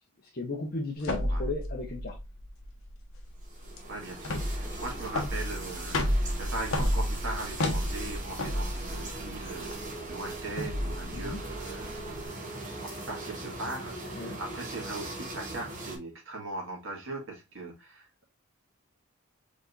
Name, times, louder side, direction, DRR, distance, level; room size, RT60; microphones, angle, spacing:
voice 1, 0.3-2.2 11.1-11.4 14.1-14.4, left 2 dB, 40° left, 0.9 m, -35 dB
sound 1, 1.0-12.2, left 1 dB, 70° left, 1.2 m, -32 dB
sound 2, 3.4-16.0, right 2 dB, 35° right, 1.4 m, -40 dB
voice 2, 3.9-18.3, right 2 dB, 60° right, 2.0 m, -40 dB
5.1 x 3.7 x 2.5 m
head